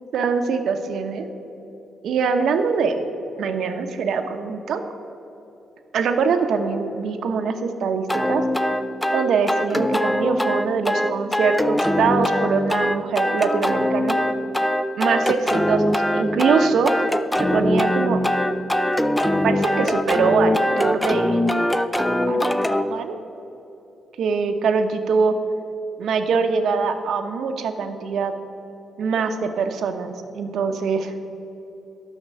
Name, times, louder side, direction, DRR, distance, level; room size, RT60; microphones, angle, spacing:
voice 1, 0.1-1.3 2.0-3.0 3.4-4.8 5.9-8.4 9.1-14.2 15.0-17.0 17.4-18.2 19.4-21.4 21.9-22.5 22.8-23.1 24.2-25.3 26.0-28.3 29.0-31.1, right 5 dB, 75° right, 7 dB, 0.9 m, -23 dB
sound 1, 8.1-22.9, left 1 dB, 10° left, 0.5 m, -22 dB
11.5 x 5.9 x 7.6 m, 2.9 s
cardioid pair, 100°, 0 cm